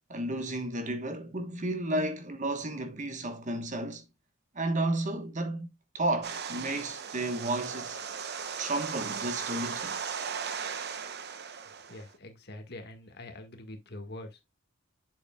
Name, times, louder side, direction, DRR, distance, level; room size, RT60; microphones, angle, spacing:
voice 1, 0.1-4.0 4.5-5.7 5.9-8.0 8.6-10.0, right 2 dB, 40° right, 1.2 m, -32 dB
sound 1, 6.2-12.1, right 6 dB, 55° right, 0.8 m, -37 dB
voice 2, 11.9-14.4, left 1 dB, 55° left, 1.7 m, -44 dB
8.3 x 7.1 x 2.3 m
head